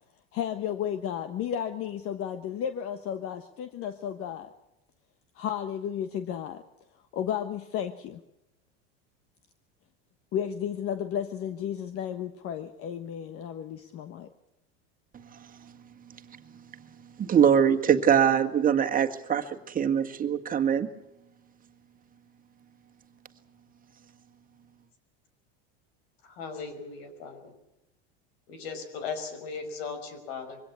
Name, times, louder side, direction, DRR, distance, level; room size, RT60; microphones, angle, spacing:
voice 1, 0.3-4.5 5.4-6.6 7.1-8.2 10.3-14.3, left 9 dB, 45° left, 1.4 m, -33 dB
voice 2, 17.2-20.9, right 8 dB, 25° right, 1.8 m, -23 dB
voice 3, 26.4-27.5 28.5-30.6, left 5 dB, 80° left, 5.5 m, -37 dB
23.5 x 17.5 x 8.4 m
supercardioid pair, 120°, 31 cm